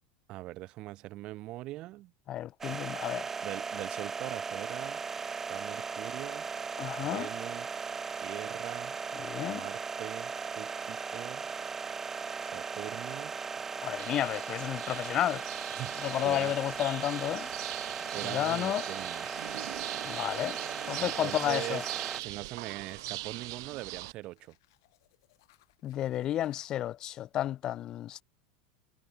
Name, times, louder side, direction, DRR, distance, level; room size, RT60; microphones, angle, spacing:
voice 1, 0.3-2.1 2.7-2.8 3.4-5.0 5.5-6.5 7.0-7.8 8.2-9.0 9.5-11.4 12.4-13.3 15.7-16.0 16.2-16.5 18.1-19.3 21.0-21.8 22.2-24.5, right 17 dB, 40° right, 1.1 m, -42 dB
voice 2, 2.3-3.3 6.8-7.3 9.2-9.6 13.8-15.4 16.0-17.5 18.2-18.8 20.0-20.6 20.9-21.8 25.8-28.2, left 12 dB, 35° left, 0.5 m, -32 dB
sound 1, 2.6-22.2, right 5 dB, 15° right, 0.8 m, -38 dB
sound 2, 14.0-24.1, right 21 dB, 70° right, 0.5 m, -41 dB
sound 3, 18.9-26.7, left 20 dB, 70° left, 5.8 m, -65 dB
supercardioid pair, 145°, 2 cm